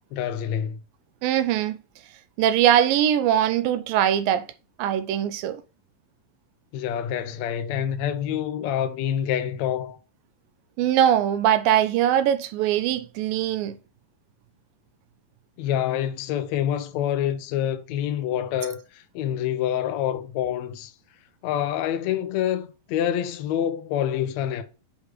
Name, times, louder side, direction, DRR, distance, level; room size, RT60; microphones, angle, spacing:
voice 1, 0.1-0.8 6.7-10.0 15.6-20.9 21.4-24.6, left 10 dB, 85° left, 1.5 m, -27 dB
voice 2, 1.2-1.8 2.4-4.5 4.8-5.6 10.8-13.8, right 10 dB, 80° right, 2.3 m, -21 dB
8.1 x 3.2 x 5.0 m
omnidirectional pair, 4.2 m